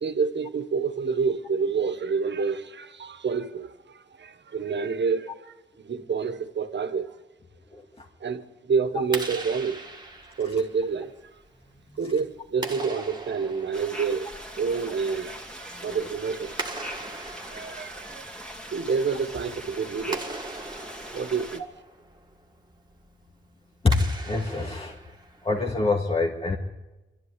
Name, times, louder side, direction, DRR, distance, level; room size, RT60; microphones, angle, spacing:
voice 1, 0.0-7.2 8.2-9.8 10.4-11.1 12.0-14.3 14.6-17.2 17.5-18.4 18.7-20.3 21.1-21.6, right 5 dB, 60° right, 1.4 m, -28 dB
voice 2, 7.7-8.1 15.7-16.0 17.0-17.1 23.8-25.0 25.4-26.6, left 3 dB, 30° left, 1.8 m, -26 dB
Clapping, 9.0-25.7, right 2 dB, 20° right, 2.0 m, -41 dB
sound 1, 13.7-21.6, equal, 5° left, 2.5 m, -41 dB
24.5 x 12.5 x 9.7 m
wide cardioid pair, 120°, 20 cm